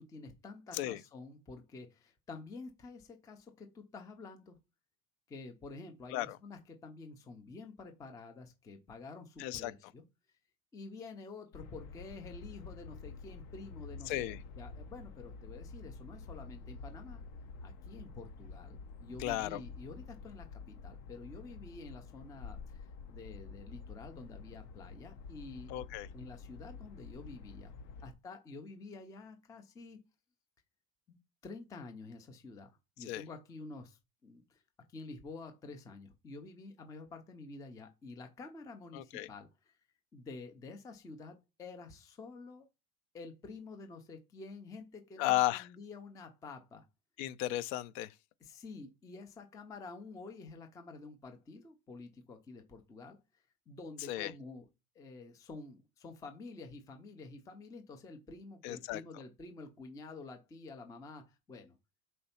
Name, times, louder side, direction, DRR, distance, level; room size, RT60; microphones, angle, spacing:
voice 1, 0.0-4.6 5.3-10.0 10.7-14.2 14.6-17.2 17.6-25.7 26.1-27.7 28.0-30.0 31.1-34.6 34.9-39.8 40.1-42.7 43.1-46.8 48.4-53.2 53.7-54.7 55.0-61.8, left 3 dB, 10° left, 0.4 m, -49 dB
voice 2, 9.4-9.7 14.1-14.4 19.2-19.6 25.7-26.1 33.1-33.2 38.9-39.3 45.2-45.7 47.2-48.1 54.1-54.3 58.6-59.0, left 15 dB, 60° left, 0.6 m, -34 dB
sound 1, 11.5-28.1, left 4 dB, 85° left, 1.0 m, -49 dB
4.3 x 3.9 x 5.6 m
cardioid pair, 165°, 45 cm